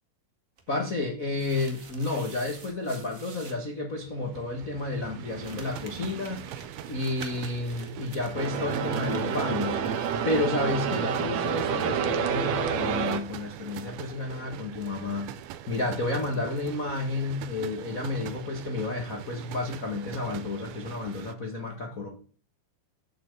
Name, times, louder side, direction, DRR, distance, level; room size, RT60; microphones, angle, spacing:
sound 1, 0.6-3.6 5.4-11.1 11.4-11.5 12.8-16.8, right 4 dB, 55° right, 0.9 m, -50 dB
voice 1, 0.7-6.4 6.9-9.8 10.2-15.3 15.7-22.1, left 2 dB, 65° left, 2 dB, 0.8 m, -31 dB
sound 2, 3.9-21.4, right 11 dB, 85° right, 2.7 m, -43 dB
sound 3, 8.3-13.2, right 7 dB, 70° right, 1.6 m, -28 dB
11.5 x 6.0 x 8.1 m, 0.42 s
omnidirectional pair, 4.3 m